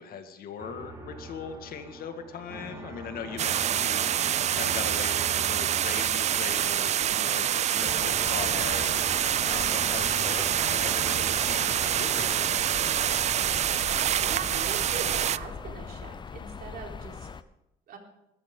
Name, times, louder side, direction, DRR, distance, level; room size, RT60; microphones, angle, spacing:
voice 1, 0.0-13.0, left 7 dB, 60° left, 7 dB, 2.0 m, -40 dB
sound 1, 0.6-16.5, right 2 dB, 20° right, 4.6 m, -43 dB
sound 2, 3.4-15.4, right 10 dB, 40° right, 0.4 m, -26 dB
sound 3, 7.8-17.4, left 6 dB, 25° left, 0.7 m, -41 dB
voice 2, 13.9-17.3 17.9-18.0, right 5 dB, 60° right, 0 dB, 4.1 m, -41 dB
20.5 x 14.0 x 3.9 m, 0.88 s
cardioid pair, 110°, 17 cm